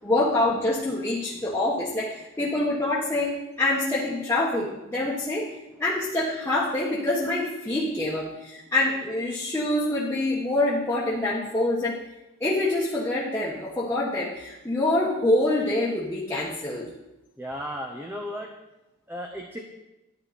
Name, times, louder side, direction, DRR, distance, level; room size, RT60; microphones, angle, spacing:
voice 1, 0.0-5.5 5.8-12.0 12.4-16.9, left 2 dB, 10° left, -7 dB, 1.3 m, -26 dB
voice 2, 17.4-18.5 19.1-19.6, equal, 10° right, 1 dB, 0.8 m, -35 dB
11.0 x 10.5 x 4.2 m, 0.97 s
head